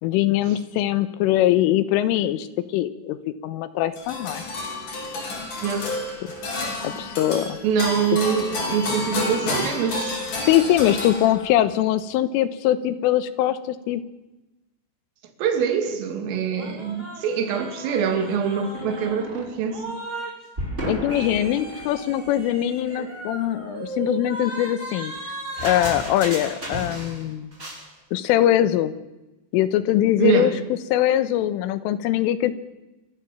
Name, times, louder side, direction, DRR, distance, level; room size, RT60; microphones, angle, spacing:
voice 1, 0.0-2.5 2.7-4.4 6.2-6.3 6.8-7.6 10.5-14.0 20.9-25.1 25.6-27.5 28.1-28.9 29.5-32.6, left 12 dB, 80° left, 14 dB, 3.5 m, -22 dB
sound 1, 4.0-11.6, left 2 dB, 40° left, 5.8 m, -30 dB
voice 2, 5.6-5.9 7.6-10.3 15.4-20.0 30.2-30.5, right 7 dB, 80° right, 7 dB, 4.9 m, -24 dB
sound 2, 16.6-20.3 20.6-27.3 27.5-27.8, right 1 dB, 15° right, 6.0 m, -34 dB
27.0 x 15.0 x 7.3 m, 1.0 s
omnidirectional pair, 5.8 m